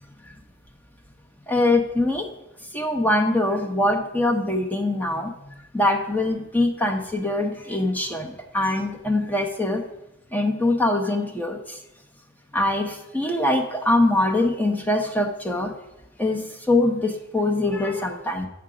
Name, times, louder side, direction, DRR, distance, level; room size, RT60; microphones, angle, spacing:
voice 1, 1.5-2.2 2.7-5.3 5.7-9.8 10.3-11.8 12.5-15.7 16.2-18.5, left 2 dB, 10° left, 2 dB, 0.7 m, -23 dB
8.0 x 4.7 x 4.9 m, 0.91 s
head